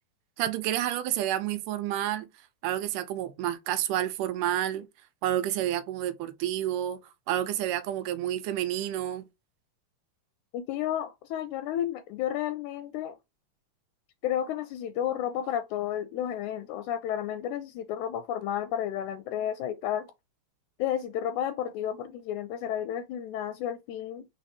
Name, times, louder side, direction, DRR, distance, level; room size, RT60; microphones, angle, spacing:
voice 1, 0.4-2.3 2.6-4.9 5.2-7.0 7.3-9.2, right 12 dB, 85° right, 2.2 m, -29 dB
voice 2, 10.5-13.2 14.2-20.1 20.8-24.3, left 10 dB, 80° left, 1.9 m, -32 dB
4.5 x 4.1 x 2.8 m
omnidirectional pair, 3.6 m